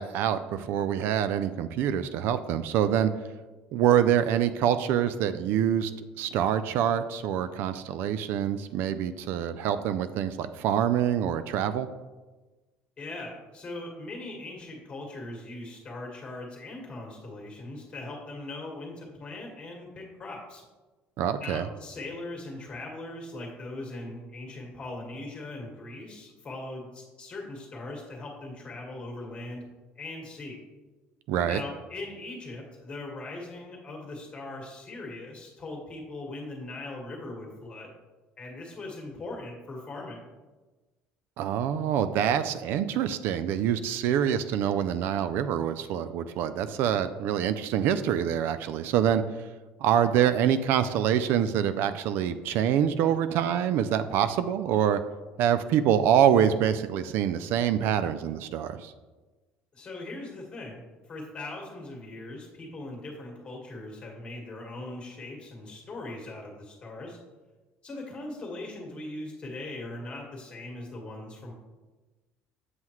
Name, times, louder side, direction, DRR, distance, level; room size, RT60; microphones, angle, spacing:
voice 1, 0.0-3.1 3.7-11.9 21.2-21.7 31.3-31.6 41.4-49.2 49.8-55.0 55.4-58.9, right 9 dB, 65° right, 12 dB, 0.4 m, -25 dB
voice 2, 13.0-20.6 21.4-29.6 30.0-30.6 31.5-37.9 38.4-40.3 59.7-67.2 67.8-71.5, left 2 dB, 25° left, 0 dB, 1.6 m, -40 dB
7.8 x 5.6 x 3.0 m, 1.2 s
cardioid pair, 140°, 4 cm